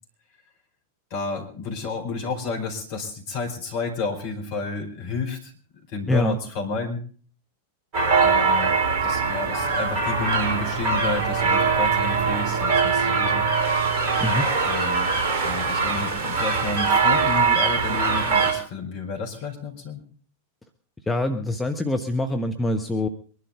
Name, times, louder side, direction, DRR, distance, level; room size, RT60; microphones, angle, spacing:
voice 1, 1.1-5.5 5.9-7.0 8.2-8.7 9.0-13.5 14.6-15.1 15.4-20.0, left 3 dB, 45° left, 2 dB, 4.7 m, -31 dB
sound 1, 7.9-18.5, right 4 dB, 40° right, 4.2 m, -22 dB
voice 2, 21.1-23.1, left 1 dB, 10° left, 4 dB, 1.2 m, -24 dB
23.5 x 12.0 x 3.8 m, 0.42 s
figure-of-eight pair, 90°, 0 cm